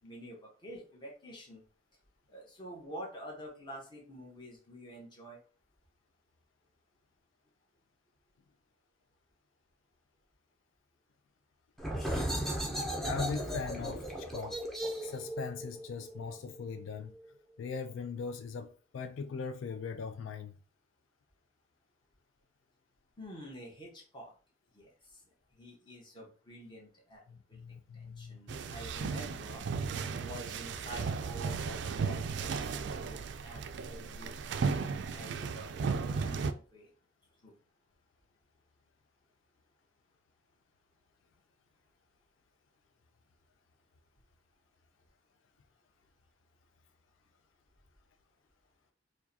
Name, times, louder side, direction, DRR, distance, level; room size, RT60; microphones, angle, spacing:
voice 1, 0.0-1.6 2.3-5.4 23.2-24.3 24.7-25.2 25.5-29.7 30.2-36.9 37.4-37.6, equal, 25° left, 1.1 m, -48 dB
sound 1, 11.8-17.2, equal, ahead, 0.6 m, -36 dB
voice 2, 13.0-14.6 15.0-17.1 17.6-20.6 27.3-28.4, left 5 dB, 85° left, 0.3 m, -40 dB
sound 2, 28.5-36.5, right 5 dB, 60° right, 0.3 m, -35 dB
4.6 x 2.2 x 2.7 m
head